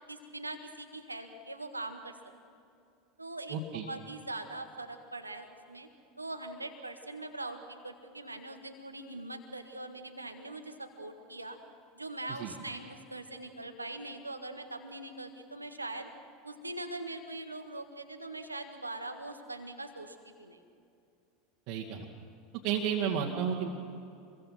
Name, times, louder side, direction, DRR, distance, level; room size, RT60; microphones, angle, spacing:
voice 1, 0.1-2.1 3.2-3.6 3.9-5.9 6.2-11.6 12.0-16.1 16.4-20.6, right 2 dB, 85° right, 6 dB, 1.7 m, -42 dB
voice 2, 3.5-3.9 12.4-12.5 21.7-22.1 22.6-23.7, right 7 dB, 50° right, -3 dB, 2.3 m, -32 dB
27.0 x 22.5 x 6.0 m, 2.6 s
figure-of-eight pair, 80°, 0 cm